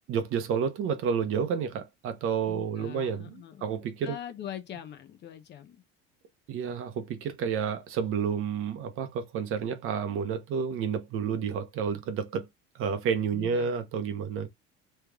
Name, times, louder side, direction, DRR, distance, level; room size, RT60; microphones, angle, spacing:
voice 1, 0.1-4.2 6.5-12.5 12.7-14.5, right 6 dB, 45° right, 1.0 m, -30 dB
voice 2, 2.5-3.7 4.0-5.8 13.3-13.7, left 10 dB, 35° left, 0.9 m, -42 dB
3.4 x 3.2 x 3.6 m
cardioid pair, 135°, 29 cm